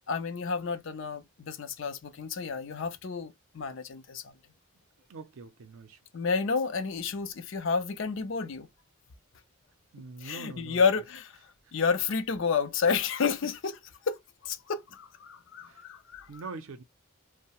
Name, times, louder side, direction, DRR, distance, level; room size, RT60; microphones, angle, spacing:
voice 1, 0.1-4.3 6.1-8.7 10.2-11.4 11.7-13.7 14.1-16.3, left 5 dB, 65° left, 0.5 m, -30 dB
voice 2, 5.1-6.0 9.9-10.8 15.7-15.8 16.3-16.8, right 3 dB, 85° right, 0.5 m, -43 dB
2.7 x 2.0 x 2.9 m
head